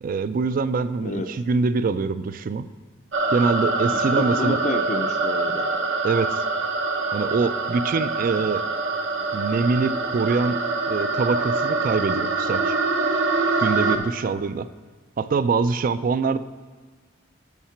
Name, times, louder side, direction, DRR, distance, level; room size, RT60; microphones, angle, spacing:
voice 1, 0.0-2.7 3.3-4.6 6.0-6.4 7.1-8.6 9.3-10.6 10.9-12.8 13.6-14.7 15.2-16.4, right 4 dB, 45° right, 14 dB, 0.3 m, -24 dB
sound 1, 3.1-14.0, right 3 dB, 75° right, 0.8 m, -25 dB
voice 2, 3.9-5.7, left 2 dB, 40° left, 6 dB, 0.5 m, -29 dB
7.3 x 5.8 x 5.7 m, 1.4 s
head